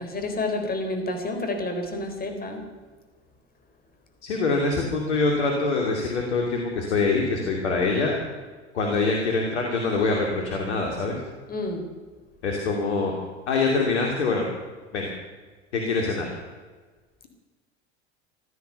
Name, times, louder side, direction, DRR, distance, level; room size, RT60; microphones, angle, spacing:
voice 1, 0.0-2.7 11.5-11.9, left 2 dB, 25° left, 5 dB, 4.0 m, -29 dB
voice 2, 4.2-8.2 8.7-11.2 12.4-13.1 13.5-14.5 14.9-15.1 15.7-16.3, left 3 dB, 80° left, 1 dB, 2.8 m, -24 dB
16.0 x 12.5 x 6.8 m, 1.4 s
hypercardioid pair, 85°, 34 cm